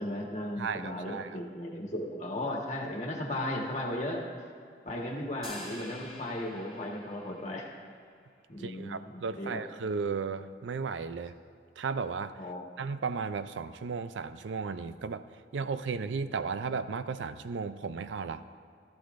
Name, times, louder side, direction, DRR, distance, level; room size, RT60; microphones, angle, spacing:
voice 1, 0.0-4.2 4.8-7.7 8.5-9.6 12.4-12.6, left 1 dB, 40° left, -1 dB, 1.4 m, -36 dB
voice 2, 0.6-1.4 8.6-11.3 11.8-12.4 12.8-15.2 15.5-18.6, right 5 dB, 80° right, 12 dB, 0.4 m, -35 dB
sound 1, 5.4-8.0, left 1 dB, ahead, 3.0 m, -47 dB
15.5 x 13.0 x 2.6 m, 2.2 s
head